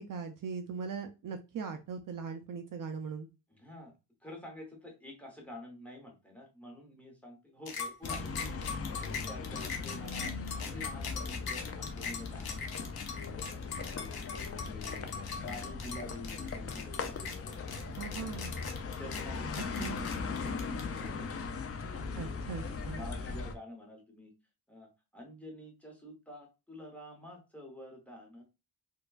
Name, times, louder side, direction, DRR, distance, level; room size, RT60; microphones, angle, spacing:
voice 1, 0.0-3.3 17.8-18.6 19.8-20.0 22.1-23.1, right 5 dB, 55° right, 6 dB, 0.5 m, -40 dB
voice 2, 3.5-4.0 4.2-8.3 8.8-12.6 13.2-14.1 14.6-15.0 15.4-17.6 19.0-21.4 22.2-24.3 24.7-28.4, left 1 dB, 5° left, 0 dB, 1.0 m, -48 dB
sound 1, 7.7-21.1, left 5 dB, 65° left, 0.9 m, -41 dB
sound 2, 8.0-23.5, left 4 dB, 35° left, 0.4 m, -39 dB
4.5 x 2.2 x 2.4 m, 0.28 s
wide cardioid pair, 170°, 40 cm